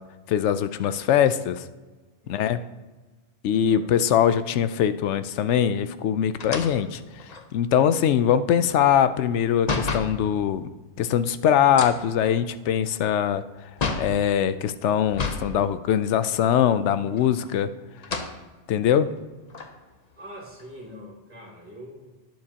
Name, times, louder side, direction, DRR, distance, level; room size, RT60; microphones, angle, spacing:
voice 1, 0.3-1.6 2.3-2.6 3.4-7.0 7.5-10.6 11.0-13.4 14.0-17.7 18.7-19.1, left 9 dB, 80° left, 12 dB, 0.9 m, -22 dB
voice 2, 2.2-2.6 3.5-3.9 20.2-22.1, equal, 10° right, -6 dB, 3.0 m, -44 dB
sound 1, 6.4-10.2 11.6-14.2 15.1-15.5 15.9-16.0 17.1-17.6 18.0-18.4 19.0-19.1 19.5-20.9, left 4 dB, 40° left, 0.9 m, -32 dB
18.5 x 7.5 x 2.9 m, 1.2 s
omnidirectional pair, 1.2 m